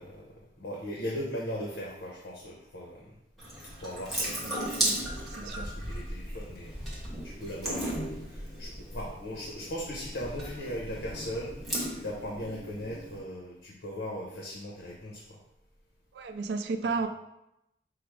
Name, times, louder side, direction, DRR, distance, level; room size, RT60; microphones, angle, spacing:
voice 1, 0.0-3.1 3.8-6.7 7.2-15.4, equal, 85° left, -3 dB, 0.8 m, -39 dB
Water tap faucet / Sink (filling or washing) / Drip, 3.4-13.2, right 1 dB, ahead, 1.0 m, -36 dB
voice 2, 4.5-5.0 5.3-5.7 16.1-17.1, right 4 dB, 75° right, 5 dB, 0.3 m, -33 dB
4.8 x 2.0 x 4.7 m, 0.85 s
head